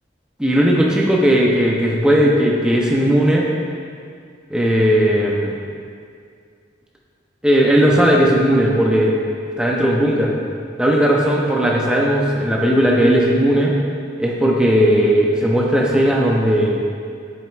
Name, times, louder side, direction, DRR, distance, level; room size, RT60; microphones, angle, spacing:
voice 1, 0.4-3.5 4.5-5.6 7.4-9.2 9.4-10.3 10.8-13.7 14.2-16.8, equal, 5° right, -2 dB, 0.4 m, -16 dB
7.4 x 5.5 x 2.3 m, 2.2 s
head